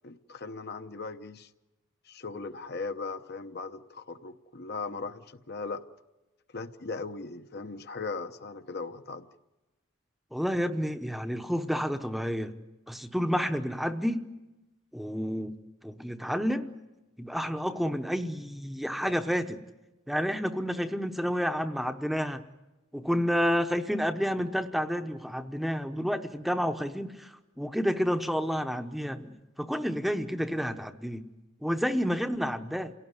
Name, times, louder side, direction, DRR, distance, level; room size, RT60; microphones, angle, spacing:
voice 1, 0.0-1.5 2.1-5.8 6.5-9.3, left 4 dB, 50° left, 9 dB, 0.9 m, -38 dB
voice 2, 10.3-12.5 12.9-14.2 14.9-15.5 15.8-16.7 17.2-19.6 20.1-22.4 22.9-31.2 31.6-32.9, equal, ahead, 7 dB, 0.8 m, -30 dB
28.5 x 17.5 x 9.6 m, 1.1 s
head